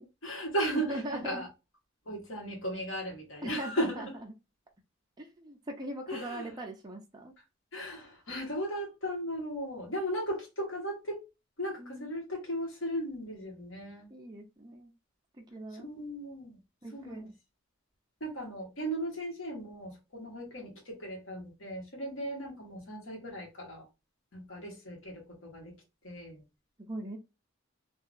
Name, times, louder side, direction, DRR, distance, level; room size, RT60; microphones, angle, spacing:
voice 1, 0.2-1.5 2.1-4.2 6.1-6.5 7.7-11.2 11.6-14.1 15.7-16.6 16.9-17.3 18.2-23.9 24.3-25.7 26.0-26.4, equal, 75° left, 1.3 m, -36 dB
voice 2, 0.7-1.4 3.4-4.1 5.2-7.3 11.8-12.1 14.1-14.9 15.4-15.9 16.8-17.3 26.8-27.2, right 1 dB, 20° right, 0.5 m, -40 dB
2.7 x 2.3 x 2.5 m
head